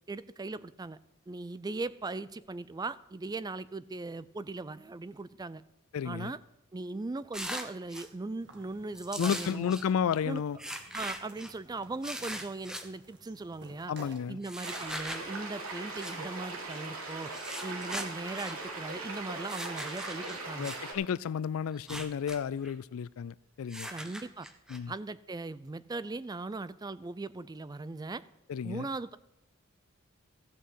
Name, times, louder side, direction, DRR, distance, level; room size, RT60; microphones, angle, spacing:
voice 1, 0.1-1.0 1.3-5.6 6.0-6.4 6.7-9.7 10.2-10.4 10.9-13.9 14.3-17.3 17.6-20.7 23.9-24.5 24.9-28.2 28.6-29.2, right 3 dB, 20° right, 0.4 m, -39 dB
voice 2, 5.9-6.3 9.2-10.6 13.9-14.4 20.6-23.9 24.7-24.9 28.5-28.9, left 7 dB, 75° left, 0.4 m, -32 dB
sound 1, 7.3-8.1 8.9-9.8 10.6-11.5 12.0-12.8 14.4-15.2 16.0-16.2 17.2-18.6 19.4-20.8 21.7-22.4 22.6-22.7 23.7-24.8, equal, 5° right, 0.9 m, -40 dB
sound 2, 8.4-14.3, right 1 dB, 55° right, 2.2 m, -55 dB
sound 3, 14.6-20.9, right 3 dB, 80° right, 2.6 m, -40 dB
14.5 x 6.5 x 7.8 m
head